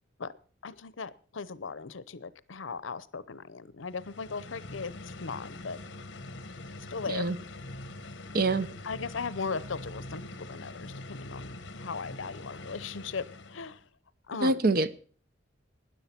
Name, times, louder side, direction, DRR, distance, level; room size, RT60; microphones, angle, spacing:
voice 1, 0.6-5.8 6.9-7.3 8.8-13.8 14.3-14.6, left 5 dB, 80° left, 0.7 m, -38 dB
sound 1, 3.8-13.9, left 2 dB, 65° left, 1.1 m, -44 dB
voice 2, 8.3-8.7 14.4-14.9, right 2 dB, 50° right, 0.7 m, -25 dB
13.0 x 10.5 x 5.9 m
head